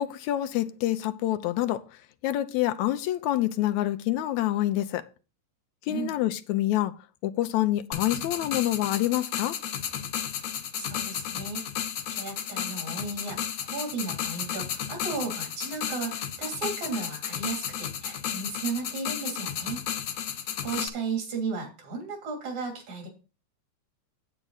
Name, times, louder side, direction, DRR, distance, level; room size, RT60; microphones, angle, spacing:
voice 1, 0.0-1.8 2.2-5.0 5.9-6.9 7.2-9.6, left 14 dB, 85° left, 2.0 m, -27 dB
sound 1, 7.9-20.9, left 9 dB, 65° left, 2.1 m, -33 dB
voice 2, 10.7-19.8 20.3-23.1, right 4 dB, 75° right, 4.2 m, -35 dB
9.0 x 8.6 x 4.0 m
omnidirectional pair, 3.3 m